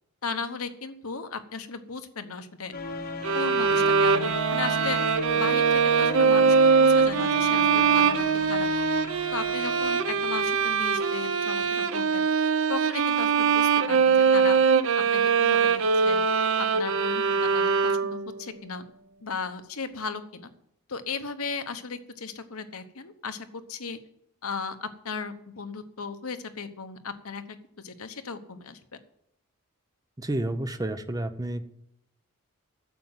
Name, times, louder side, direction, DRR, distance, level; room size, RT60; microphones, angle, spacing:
voice 1, 0.2-2.7 3.3-5.0 5.3-8.7 9.3-12.2 12.7-14.6 14.9-16.2 16.7-18.8 19.2-20.5 20.9-24.0 24.4-27.6 27.8-28.8, left 5 dB, 75° left, 9 dB, 1.1 m, -36 dB
sound 1, 2.7-11.1, equal, 45° left, 1.1 m, -35 dB
sound 2, 3.2-18.3, right 5 dB, 60° right, 0.6 m, -22 dB
voice 2, 30.2-31.6, right 1 dB, 15° right, 10 dB, 0.6 m, -30 dB
9.4 x 7.5 x 9.0 m, 0.75 s
head